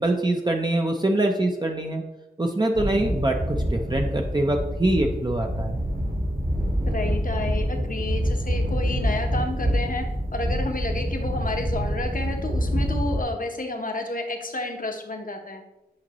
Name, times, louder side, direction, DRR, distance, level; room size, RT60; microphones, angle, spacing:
voice 1, 0.0-2.0 2.4-5.8, right 1 dB, 25° right, 1 dB, 0.7 m, -24 dB
sound 1, 2.7-13.2, equal, 60° right, 1.4 m, -26 dB
voice 2, 6.9-10.1 10.3-15.6, left 2 dB, 55° left, 4 dB, 1.0 m, -30 dB
8.7 x 5.1 x 3.0 m, 0.94 s
wide cardioid pair, 65°, 16 cm